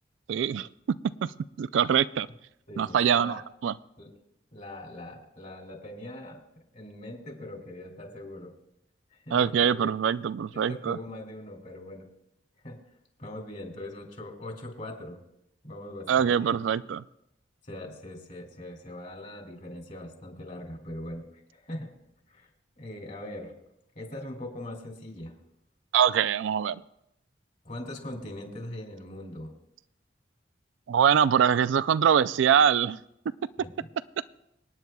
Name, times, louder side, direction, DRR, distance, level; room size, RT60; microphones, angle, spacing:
voice 1, 0.3-0.7 1.2-1.3 1.6-2.3 2.8-3.7 9.3-11.0 16.1-17.0 25.9-26.8 30.9-33.0, right 8 dB, 80° right, 16 dB, 0.3 m, -23 dB
voice 2, 2.7-3.4 4.0-4.1 4.5-6.4 6.7-8.5 9.1-9.9 10.5-12.1 12.6-12.8 13.2-15.2 15.6-16.5 17.7-21.2 21.5-21.9 22.3-22.5 22.8-23.5 24.0-25.3 27.6-29.5 33.6-33.7, left 1 dB, 45° left, 1 dB, 2.7 m, -41 dB
27.0 x 9.4 x 2.3 m, 0.81 s
head